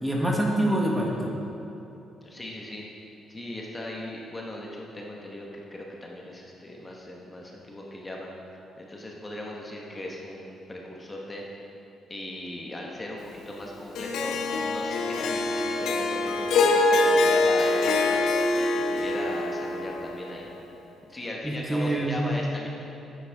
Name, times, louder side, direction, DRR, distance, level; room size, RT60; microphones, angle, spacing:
voice 1, 0.0-1.3 21.4-22.2, right 1 dB, 10° right, -1 dB, 1.3 m, -25 dB
voice 2, 2.2-2.9 3.3-8.3 8.8-11.4 12.1-18.3 18.7-20.5 21.1-22.7, left 1 dB, 20° left, -2 dB, 1.1 m, -38 dB
Harp, 13.9-20.3, left 3 dB, 80° left, 0.7 m, -24 dB
9.2 x 8.1 x 3.5 m, 2.9 s
cardioid pair, 90°, 0 cm